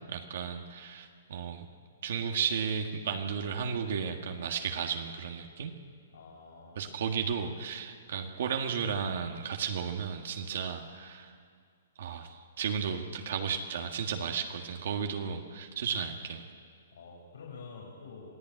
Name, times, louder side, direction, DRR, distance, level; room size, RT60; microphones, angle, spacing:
voice 1, 0.0-1.7 2.0-5.7 6.7-11.3 12.0-16.4, right 7 dB, 60° right, 3 dB, 1.7 m, -34 dB
voice 2, 6.1-7.0 16.9-18.4, left 4 dB, 80° left, -2 dB, 5.6 m, -48 dB
27.5 x 17.0 x 9.2 m, 2.2 s
hypercardioid pair, 170°, 0 cm